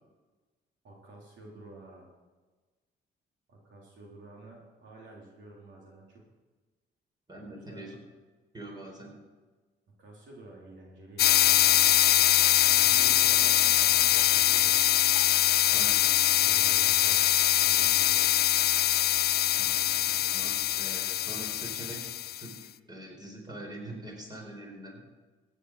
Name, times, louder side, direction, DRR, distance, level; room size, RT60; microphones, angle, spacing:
voice 1, 0.8-2.1 3.5-6.2 7.4-7.8 10.0-15.0 16.4-17.2 17.6-18.4, right 2 dB, 70° right, -2 dB, 3.5 m, -50 dB
voice 2, 7.3-8.0 8.5-9.1 15.7-16.1 19.6-22.5 22.9-25.0, right 1 dB, 20° right, 0 dB, 4.5 m, -44 dB
sound 1, 11.2-22.5, left 12 dB, 55° left, 0.4 m, -23 dB
sound 2, 13.9-16.4, left 13 dB, 90° left, 1.0 m, -41 dB
15.0 x 9.9 x 4.8 m, 1.3 s
cardioid pair, 90°, 20 cm